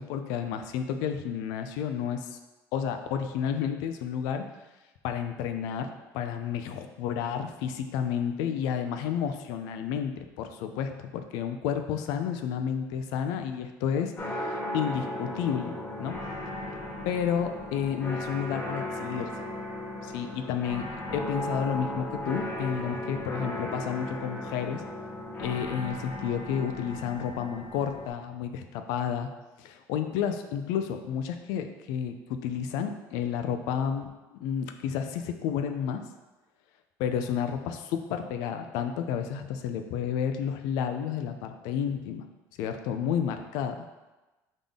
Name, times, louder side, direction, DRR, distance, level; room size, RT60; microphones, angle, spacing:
voice 1, 0.0-2.4 2.7-4.4 5.0-16.1 17.0-19.3 20.0-20.9 21.1-24.8 25.4-29.3 29.6-36.0 37.0-42.2 42.6-43.7, left 8 dB, 85° left, 7 dB, 0.4 m, -31 dB
sound 1, 14.2-28.1, left 1 dB, 35° left, 1.0 m, -36 dB
3.8 x 3.7 x 3.5 m, 1.1 s
cardioid pair, 155°, 6 cm